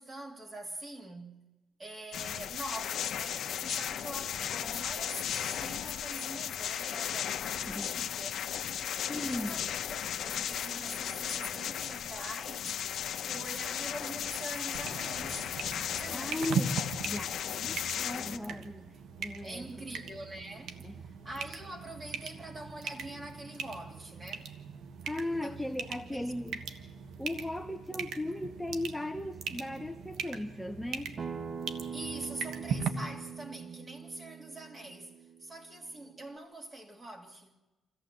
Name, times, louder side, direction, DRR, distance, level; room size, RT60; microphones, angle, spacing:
voice 1, 0.0-1.4 1.8-8.3 9.1-9.6 9.9-12.9 13.3-15.5 15.9-16.6 19.4-24.5 25.4-25.7 26.1-26.3 31.9-37.6, right 1 dB, 25° right, 2.9 m, -44 dB
sound 1, 2.1-18.4, left 9 dB, 70° left, 0.9 m, -35 dB
voice 2, 9.0-9.6 16.1-16.8 17.1-19.9 20.8-20.9 25.0-26.6 27.2-31.2, left 1 dB, 5° left, 0.7 m, -37 dB
sound 2, 14.7-32.9, right 6 dB, 75° right, 1.3 m, -40 dB
Acoustic guitar, 31.2-36.4, right 6 dB, 45° right, 1.0 m, -43 dB
26.5 x 14.5 x 7.6 m
cardioid pair, 90°, 0 cm